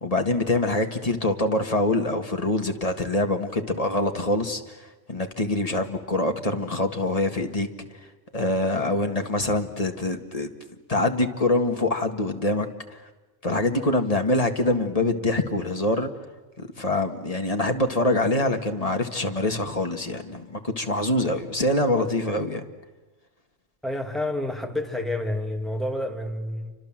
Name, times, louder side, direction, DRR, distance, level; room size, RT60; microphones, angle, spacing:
voice 1, 0.0-4.8 5.1-7.7 8.3-10.5 10.9-13.0 13.4-16.1 16.6-22.6, left 2 dB, 25° left, 5 dB, 2.0 m, -25 dB
voice 2, 23.8-26.7, left 1 dB, ahead, 2 dB, 2.7 m, -29 dB
30.0 x 25.5 x 7.7 m, 1.2 s
omnidirectional pair, 1.4 m